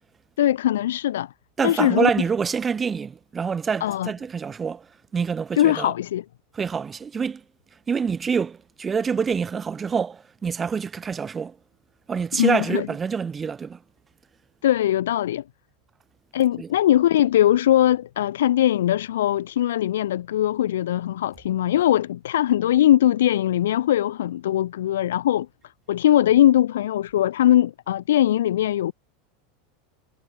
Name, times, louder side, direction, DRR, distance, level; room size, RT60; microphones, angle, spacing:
voice 1, 0.4-1.3 1.6-2.1 3.8-4.1 5.5-6.2 12.4-12.9 14.6-15.4 16.3-25.5 25.9-28.9, left 12 dB, 65° left, 0.6 m, -20 dB
voice 2, 1.6-4.9 5.1-5.9 6.5-7.4 7.9-11.6 12.1-13.8 16.6-16.7, right 6 dB, 20° right, 1.6 m, -26 dB
figure-of-eight pair, 85°, 0 cm